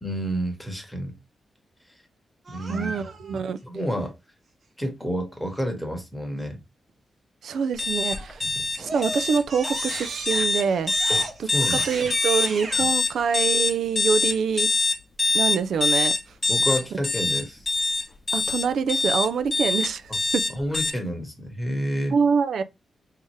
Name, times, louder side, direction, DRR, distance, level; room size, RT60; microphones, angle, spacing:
voice 1, 0.0-1.2 2.5-4.2 4.8-6.6 8.5-8.7 11.1-11.9 12.8-12.9 16.5-17.7 20.5-22.2, equal, 5° left, 1.1 m, -30 dB
Crying sobbing, 2.5-3.4 8.1-8.4 8.8-12.9, right 3 dB, 55° right, 1.0 m, -35 dB
voice 2, 2.7-3.6 7.4-8.4 8.8-10.9 11.7-14.7 15.3-16.1 18.3-20.5 22.1-22.6, right 6 dB, 80° right, 0.4 m, -25 dB
sound 1, 7.8-20.9, left 3 dB, 25° left, 0.8 m, -24 dB
3.6 x 2.7 x 3.1 m
wide cardioid pair, 120°, 0 cm